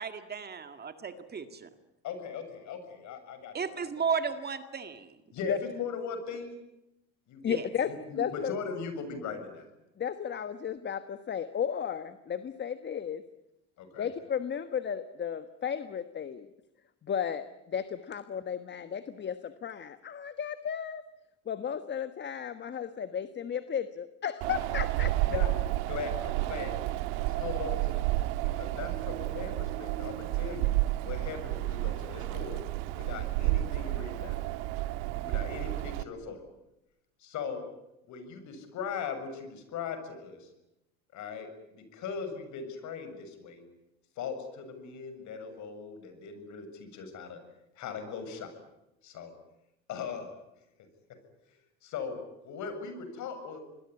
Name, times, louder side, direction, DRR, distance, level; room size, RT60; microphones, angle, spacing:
voice 1, 0.0-0.6 1.3-1.4 3.5-5.1 7.5-7.6, right 6 dB, 30° right, 9 dB, 2.0 m, -33 dB
voice 2, 2.0-4.1 5.3-6.6 7.3-7.6 7.9-9.6 13.8-14.1 25.2-25.6 25.9-26.7 27.2-28.0 28.4-30.7 31.0-32.6 32.9-34.4 35.2-36.4 37.2-37.6 38.1-40.5 41.1-43.6 44.2-47.4 47.8-48.5 49.0-49.3 49.9-50.3 51.8-53.6, left 6 dB, 55° left, 8 dB, 7.3 m, -39 dB
voice 3, 7.4-8.5 10.0-13.2 14.0-16.5 17.0-21.0 21.5-25.1, left 8 dB, 30° left, 11 dB, 1.3 m, -34 dB
Wind, 24.4-36.0, right 17 dB, 85° right, 1.6 m, -31 dB
26.5 x 21.0 x 9.7 m, 0.89 s
supercardioid pair, 115°, 34 cm